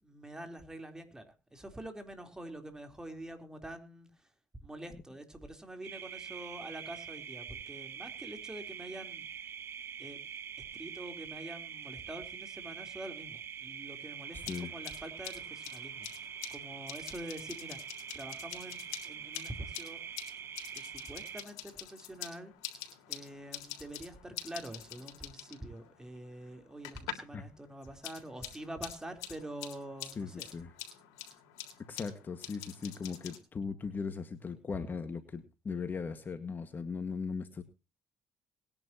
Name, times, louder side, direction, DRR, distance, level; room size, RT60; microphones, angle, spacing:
voice 1, 0.0-4.1 4.6-9.3 10.0-10.2 10.6-16.1 16.5-17.8 18.1-20.0 20.7-22.5 23.1-30.5, right 1 dB, 10° right, 5 dB, 3.8 m, -46 dB
sound 1, 5.8-21.4, right 8 dB, 50° right, 1.0 m, -44 dB
sound 2, 14.2-27.4 27.7-33.4, left 11 dB, 85° left, 3.6 m, -47 dB
voice 2, 30.2-30.7 31.9-37.6, left 5 dB, 35° left, 9 dB, 1.8 m, -38 dB
20.5 x 11.0 x 3.0 m, 0.31 s
supercardioid pair, 75°, 5 cm